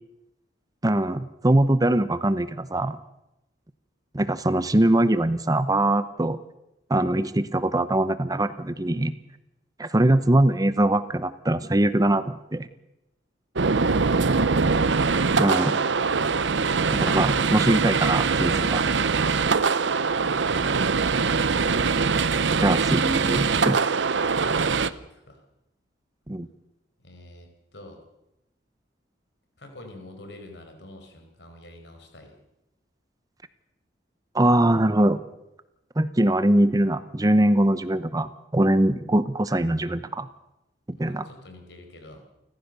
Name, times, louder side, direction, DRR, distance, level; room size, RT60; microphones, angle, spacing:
voice 1, 0.8-3.0 4.1-6.4 6.9-9.1 9.8-12.7 15.4-15.8 16.9-18.8 22.6-23.8 26.3-26.5 34.3-35.2 36.0-40.3 40.9-41.3, right 1 dB, 20° right, 13 dB, 0.8 m, -22 dB
sound 1, 13.6-24.9, right 4 dB, 85° right, 0.8 m, -22 dB
voice 2, 13.7-14.7 19.9-20.7 24.4-25.4 27.0-28.0 29.6-32.4 41.0-42.3, left 1 dB, 70° left, 4 dB, 4.9 m, -47 dB
29.5 x 15.0 x 6.8 m, 0.91 s
head